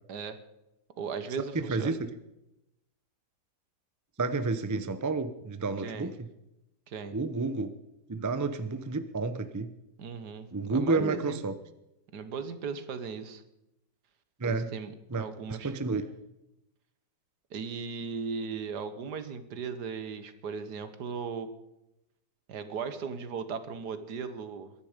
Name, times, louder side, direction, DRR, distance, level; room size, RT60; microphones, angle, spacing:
voice 1, 1.0-2.0 5.8-6.1 6.9-7.2 10.0-11.4 12.1-13.4 14.4-15.7 17.5-21.5 22.5-24.7, right 5 dB, 75° right, 11 dB, 1.8 m, -37 dB
voice 2, 1.5-2.0 4.2-6.3 7.1-7.7 8.1-9.7 10.5-11.6 14.4-14.7 15.1-16.1, right 3 dB, 25° right, 11 dB, 0.4 m, -30 dB
23.0 x 10.0 x 5.1 m, 0.89 s
omnidirectional pair, 1.8 m